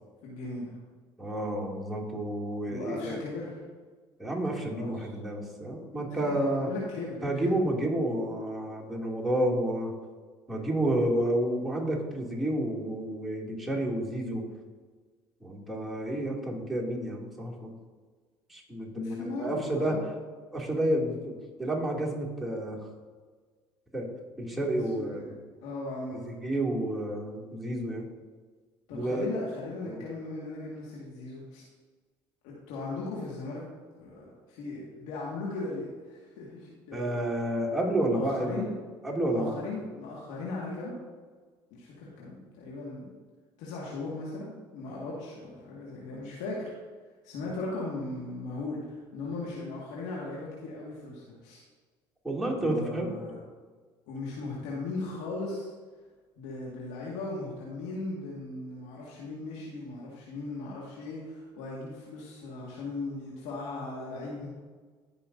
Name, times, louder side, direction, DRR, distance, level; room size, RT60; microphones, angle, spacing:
voice 1, 0.2-0.8 2.7-3.6 4.7-5.1 6.1-7.4 18.9-20.1 24.7-26.2 28.9-31.6 32.4-33.6 34.0-37.2 38.1-38.8 39.2-41.0 41.7-43.1 43.6-46.7 47.2-51.6 52.5-53.4 54.1-55.7 56.4-64.5, left 2 dB, 75° left, -5 dB, 1.9 m, -38 dB
voice 2, 1.2-3.2 4.2-6.7 7.2-9.9 10.5-14.5 15.4-17.7 18.5-19.9 20.5-21.3 21.6-22.8 23.9-24.1 24.4-25.2 26.2-28.1 28.9-29.3 29.9-30.0 36.9-38.6 39.0-39.6 52.2-53.1, right 1 dB, ahead, -4 dB, 2.7 m, -30 dB
14.5 x 5.5 x 2.7 m, 1.5 s
hypercardioid pair, 65°, 12 cm